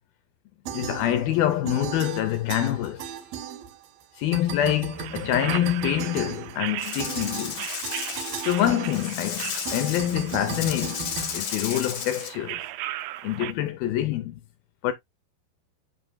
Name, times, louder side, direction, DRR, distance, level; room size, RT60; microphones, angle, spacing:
voice 1, 0.7-3.0 4.2-7.6 8.4-12.6 13.2-14.4 14.8-14.9, left 12 dB, 80° left, 2.1 m, -26 dB
sound 1, 0.7-1.4 1.7-4.0 4.3-12.2, right 7 dB, 70° right, 2.3 m, -36 dB
sound 2, 4.9-13.5, right 15 dB, 90° right, 2.3 m, -37 dB
Rattle / Rattle (instrument), 6.8-12.3, left 9 dB, 65° left, 2.0 m, -34 dB
11.0 x 5.3 x 2.2 m
omnidirectional pair, 5.1 m